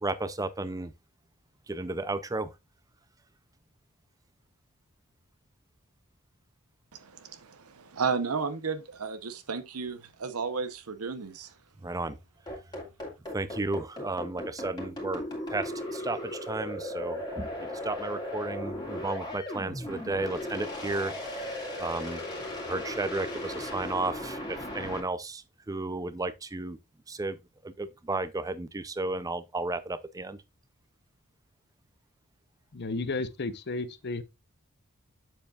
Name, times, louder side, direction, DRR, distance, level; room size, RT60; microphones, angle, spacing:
voice 1, 0.0-0.9 1.7-2.5 11.8-12.2 13.3-15.2 15.5-22.2 22.6-26.8 27.1-27.4 27.6-30.4, right 2 dB, 15° right, 0.5 m, -33 dB
voice 2, 6.9-11.5, right 5 dB, 80° right, 0.9 m, -33 dB
sound 1, 12.5-25.0, left 1 dB, 20° left, 2.1 m, -37 dB
voice 3, 32.7-34.2, left 3 dB, 50° left, 0.7 m, -33 dB
7.6 x 7.1 x 2.4 m
head